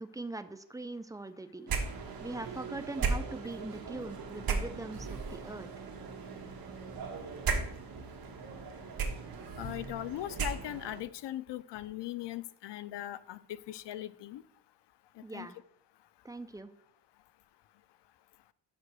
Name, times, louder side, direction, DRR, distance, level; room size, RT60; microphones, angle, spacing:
voice 1, 0.0-1.7 2.2-5.9 15.2-15.6 16.2-16.7, right 2 dB, 10° right, 10 dB, 0.4 m, -42 dB
sound 1, 1.7-11.0, right 5 dB, 60° right, 1.3 m, -37 dB
voice 2, 9.6-14.4 15.3-15.5, left 14 dB, 85° left, 16 dB, 0.5 m, -39 dB
5.9 x 5.2 x 6.1 m, 0.69 s
wide cardioid pair, 130°, 41 cm